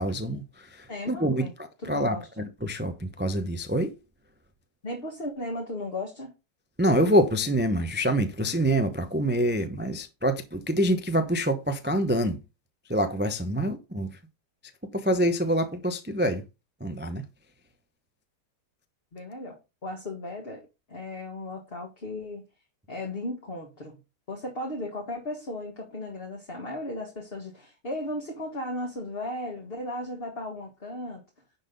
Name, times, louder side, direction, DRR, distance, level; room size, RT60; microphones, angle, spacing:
voice 1, 0.0-4.0 6.8-12.4 12.9-14.1 14.9-16.4 16.8-17.2, equal, 15° right, 0.3 m, -26 dB
voice 2, 0.9-1.5 1.9-2.4 4.8-6.3 19.1-20.6 20.9-22.4 22.9-24.0 24.3-31.2, left 1 dB, 35° left, 1.8 m, -36 dB
10.5 x 4.1 x 5.2 m
omnidirectional pair, 1.9 m